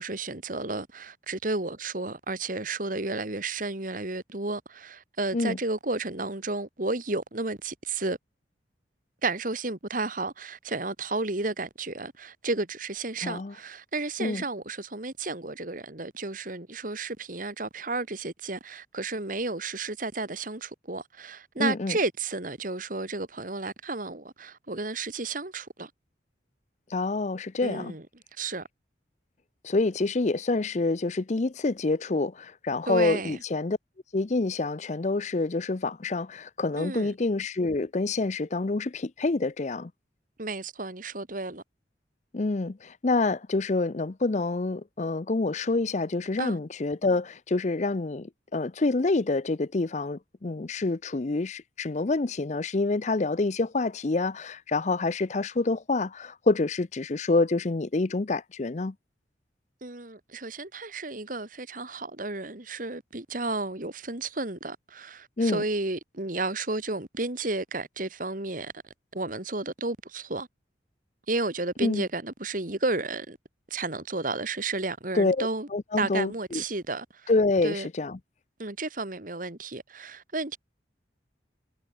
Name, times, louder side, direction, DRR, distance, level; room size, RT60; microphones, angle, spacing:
voice 1, 0.0-8.2 9.2-25.9 27.6-28.1 28.4-28.7 32.9-33.4 36.8-37.1 40.4-41.6 46.4-46.6 59.8-68.7 69.1-70.5 71.3-73.4 73.7-75.7 76.0-77.3 77.6-77.9 78.6-80.6, right 3 dB, 45° right, 2.0 m, -32 dB
voice 2, 13.2-13.5 14.2-14.4 21.6-22.0 26.9-27.9 29.6-33.8 34.1-39.9 42.3-58.9 65.4-65.6 71.8-72.0 75.1-76.6 77.3-78.2, left 3 dB, 40° left, 0.6 m, -27 dB
head